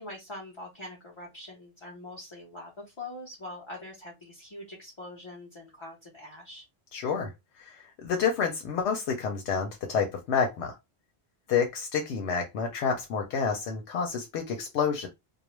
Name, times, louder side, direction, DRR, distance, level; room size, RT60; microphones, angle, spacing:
voice 1, 0.0-6.6, left 2 dB, 30° left, 0.7 m, -43 dB
voice 2, 6.9-7.3 8.0-10.7 11.5-15.1, left 6 dB, 85° left, 0.9 m, -28 dB
2.4 x 2.0 x 3.0 m
omnidirectional pair, 1.1 m